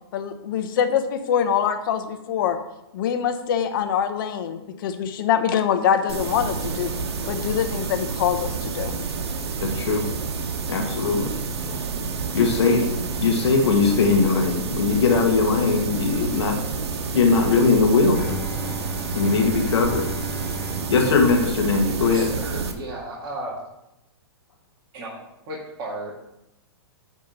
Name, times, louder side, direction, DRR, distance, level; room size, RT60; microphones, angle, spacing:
voice 1, 0.1-2.6 2.9-6.9 7.3-8.9, left 8 dB, 55° left, 8 dB, 1.0 m, -24 dB
sound 1, 6.1-22.7, right 5 dB, 75° right, 1.4 m, -29 dB
voice 2, 9.6-10.1 10.7-11.3 12.3-12.9 13.2-16.6 17.1-18.2 19.1-20.1 20.9-22.3, left 4 dB, 80° left, 2 dB, 2.1 m, -20 dB
Bowed string instrument, 18.1-22.3, equal, 10° left, 0.4 m, -37 dB
voice 3, 22.0-23.5 24.9-26.1, right 1 dB, 30° right, -6 dB, 2.0 m, -35 dB
9.6 x 3.7 x 6.7 m, 0.88 s
hypercardioid pair, 145°, 14 cm